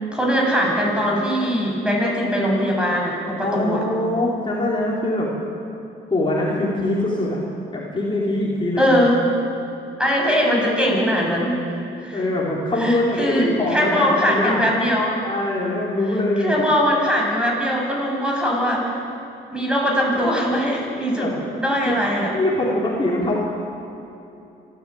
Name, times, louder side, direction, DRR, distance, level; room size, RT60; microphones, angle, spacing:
voice 1, 0.1-3.8 8.8-9.2 10.0-11.6 12.0-12.2 12.8-15.1 16.4-19.0 19.5-22.4, equal, 5° right, -2 dB, 7.6 m, -21 dB
voice 2, 3.4-5.3 6.1-7.4 7.7-9.0 12.1-14.7 15.2-16.6 21.2-21.3 21.8-22.0 22.3-23.4, left 1 dB, 25° left, -5 dB, 4.7 m, -23 dB
26.5 x 13.5 x 9.0 m, 2.8 s
cardioid pair, 90°, 20 cm